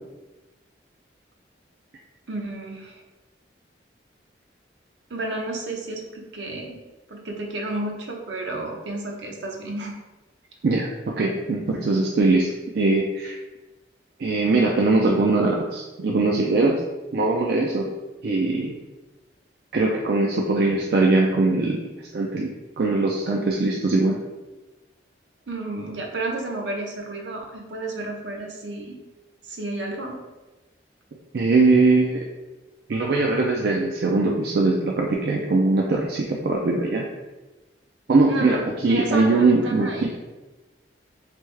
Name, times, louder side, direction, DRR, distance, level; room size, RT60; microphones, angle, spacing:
voice 1, 2.3-3.0 5.1-6.8 7.1-10.0 25.5-29.0 29.4-30.2 38.3-40.1, right 2 dB, 75° right, 0 dB, 0.7 m, -31 dB
voice 2, 10.6-12.5 12.7-13.4 14.2-16.8 17.1-17.9 18.2-18.7 19.7-22.5 22.8-24.2 31.3-32.2 32.9-37.0 38.1-38.6 38.8-40.2, right 3 dB, 55° right, -1 dB, 0.4 m, -21 dB
3.4 x 3.4 x 3.2 m, 1.1 s
head